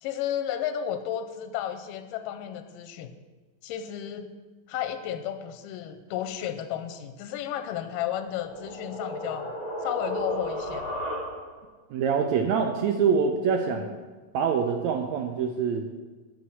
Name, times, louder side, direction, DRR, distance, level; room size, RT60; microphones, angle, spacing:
voice 1, 0.0-3.1 3.6-4.3 4.7-9.5 9.8-11.0 13.7-13.9, left 10 dB, 90° left, 9 dB, 2.2 m, -33 dB
sound 1, 7.9-11.7, equal, 10° right, 2.4 m, -34 dB
voice 2, 11.9-13.9 14.3-16.0, right 6 dB, 80° right, 4 dB, 1.7 m, -25 dB
7.1 x 7.1 x 6.2 m, 1.3 s
omnidirectional pair, 3.8 m